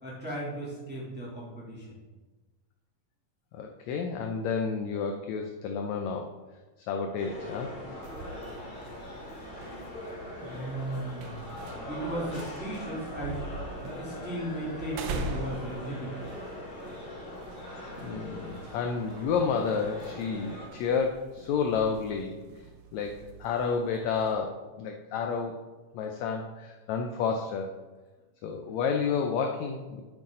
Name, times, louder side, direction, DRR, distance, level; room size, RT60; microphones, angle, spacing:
voice 1, 0.0-1.9 10.4-11.5 11.9-13.4 13.8-16.1, right 1 dB, 5° right, -7 dB, 2.2 m, -36 dB
voice 2, 3.5-6.3 6.9-7.7 18.0-22.4 22.9-25.6 25.9-27.7 28.4-30.0, left 5 dB, 75° left, 3 dB, 1.7 m, -30 dB
sound 1, 7.2-20.7, left 1 dB, 35° left, 2.4 m, -41 dB
sound 2, 8.0-24.4, right 2 dB, 75° right, 2.0 m, -44 dB
8.5 x 8.1 x 3.8 m, 1.3 s
omnidirectional pair, 3.7 m